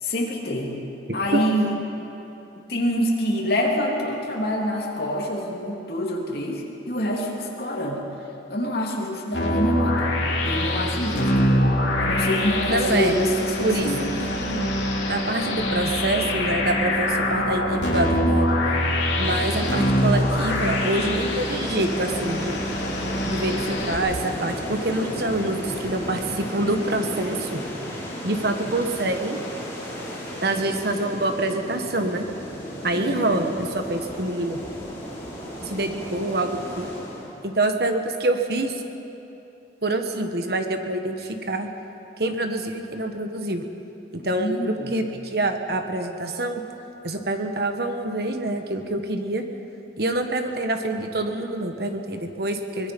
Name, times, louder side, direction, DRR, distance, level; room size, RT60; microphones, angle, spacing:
voice 1, 0.0-0.7 1.1-1.7 2.7-8.0 8.5-10.1 10.4-11.5 12.0-14.0 33.0-33.3 44.2-45.0, equal, 55° left, -2 dB, 3.0 m, -26 dB
sound 1, 9.3-24.0, left 1 dB, 80° left, 2.8 m, -24 dB
voice 2, 12.7-13.1 13.6-14.7 15.1-18.5 19.2-22.6 23.3-27.6 28.2-29.4 30.4-32.3 32.8-34.6 35.6-36.9 37.4-38.8 39.8-41.7 42.2-43.6 44.1-46.6 47.0-49.5 50.0-52.9, right 2 dB, 55° right, 5 dB, 1.4 m, -26 dB
sound 2, 19.2-37.4, equal, 15° left, 4.7 m, -34 dB
23.5 x 20.5 x 5.4 m, 2.9 s
head